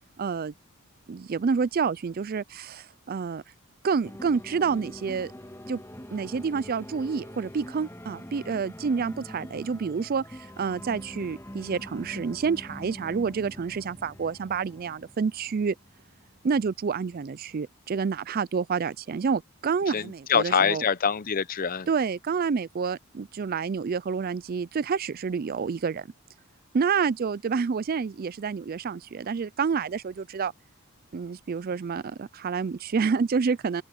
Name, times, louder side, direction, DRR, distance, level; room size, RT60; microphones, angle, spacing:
voice 1, 0.2-0.5 1.1-3.4 3.8-5.3 5.7-5.8 6.1-15.7 16.4-20.8 21.9-26.1 26.7-30.5 31.1-33.8, right 5 dB, 40° right, 0.4 m, -28 dB
sound 1, 4.0-17.7, equal, 10° left, 2.0 m, -45 dB
voice 2, 19.9-21.9, left 6 dB, 40° left, 0.6 m, -25 dB
open air
head